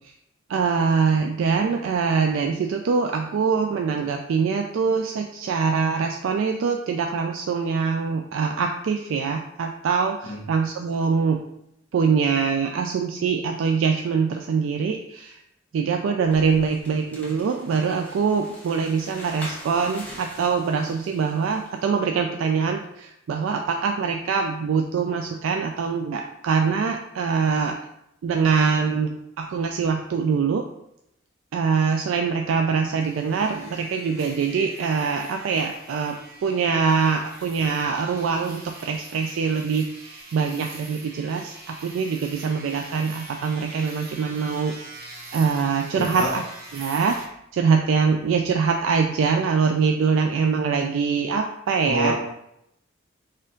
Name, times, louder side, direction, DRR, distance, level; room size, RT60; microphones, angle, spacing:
voice 1, 0.5-11.4 11.9-15.4 15.7-27.7 28.2-29.1 29.4-30.6 31.5-36.1 36.4-44.7 45.3-46.4 46.7-47.2 47.5-52.1, right 5 dB, 80° right, 4 dB, 0.3 m, -23 dB
sound 1, 16.3-21.8, left 1 dB, 10° left, 0.8 m, -43 dB
sound 2, 33.0-47.3, right 2 dB, 50° right, 0.8 m, -43 dB
voice 2, 45.9-46.3 51.8-52.1, right 1 dB, 60° left, -3 dB, 1.2 m, -26 dB
4.2 x 2.6 x 3.7 m, 0.80 s
head